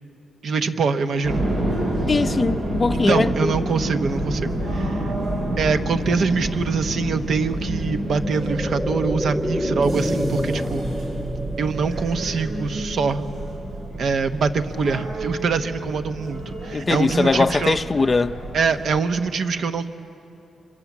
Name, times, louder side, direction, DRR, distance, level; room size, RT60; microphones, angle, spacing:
voice 1, 0.4-1.5 2.9-5.1 5.6-10.9 11.6-13.2 14.0-17.8 18.5-19.9, right 5 dB, 60° right, 0.9 m, -24 dB
sound 1, 1.2-19.0, right 1 dB, 80° right, 4.9 m, -28 dB
voice 2, 2.1-3.5 16.7-18.4, left 3 dB, 30° left, 0.5 m, -21 dB
sound 2, 6.2-15.1 15.4-15.5, equal, 5° right, 1.0 m, -31 dB
26.0 x 23.0 x 7.2 m
cardioid pair, 120°, 0 cm